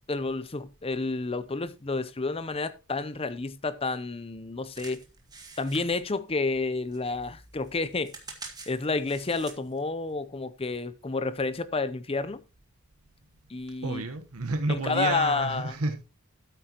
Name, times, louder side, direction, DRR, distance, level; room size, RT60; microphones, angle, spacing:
voice 1, 0.1-5.0 5.6-8.1 8.7-12.4 13.5-14.0 14.7-15.7, left 3 dB, 25° left, 0.7 m, -30 dB
sound 1, 4.7-6.7 6.9-9.8 10.3-10.4, right 4 dB, 20° right, 2.0 m, -46 dB
voice 2, 13.8-16.0, right 2 dB, 90° right, 1.2 m, -30 dB
13.0 x 8.9 x 3.0 m
head